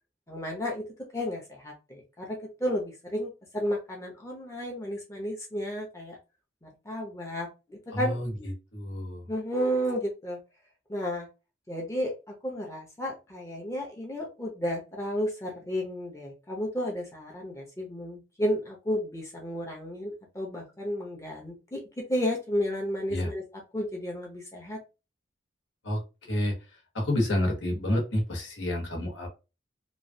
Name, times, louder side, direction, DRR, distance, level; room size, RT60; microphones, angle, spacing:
voice 1, 0.3-0.9 1.1-6.2 6.6-8.2 9.3-10.4 10.9-11.3 11.7-12.1 12.4-21.8 22.1-23.4 23.7-24.8, equal, 15° left, -1 dB, 0.6 m, -32 dB
voice 2, 7.9-9.2 23.1-23.3 25.8-26.6 26.9-29.3, left 1 dB, 80° left, 0 dB, 1.1 m, -29 dB
3.1 x 2.3 x 2.6 m, 0.28 s
head